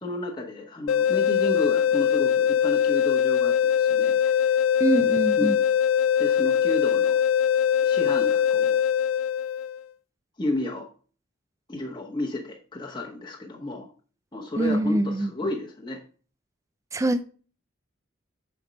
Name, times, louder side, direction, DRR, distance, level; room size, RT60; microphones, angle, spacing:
voice 1, 0.0-4.6 5.4-5.5 6.2-7.2 7.8-8.8 10.4-10.9 11.7-13.9 14.3-16.0, left 2 dB, 25° left, -1 dB, 0.9 m, -32 dB
sound 1, 0.9-9.8, left 8 dB, 85° left, 0.3 m, -22 dB
voice 2, 4.8-5.6 14.6-15.5 16.9-17.2, right 2 dB, 15° right, 11 dB, 0.4 m, -24 dB
7.1 x 4.4 x 5.1 m, 0.40 s
head